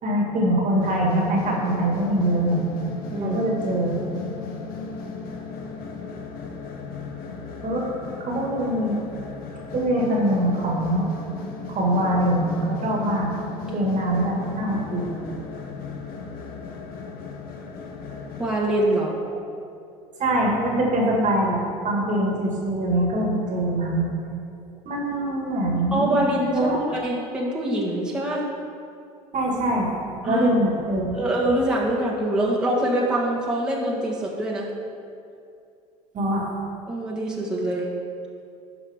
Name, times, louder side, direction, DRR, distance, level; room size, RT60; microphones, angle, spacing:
voice 1, 0.0-2.6 3.2-4.0 7.6-7.9 8.2-9.0 9.7-11.1 11.7-13.3 13.7-15.1 20.2-24.1 24.9-26.2 26.5-26.8 29.3-29.9 30.2-31.2 36.1-36.5, right 1 dB, 40° right, -2 dB, 1.9 m, -23 dB
sound 1, 0.8-18.6, left 5 dB, 50° left, 0.9 m, -36 dB
voice 2, 3.1-3.4 18.4-19.2 25.9-28.4 30.2-30.5 31.1-34.7 36.9-37.9, right 1 dB, 5° right, -6 dB, 1.6 m, -24 dB
12.0 x 4.8 x 3.5 m, 2.5 s
hypercardioid pair, 80°, 19 cm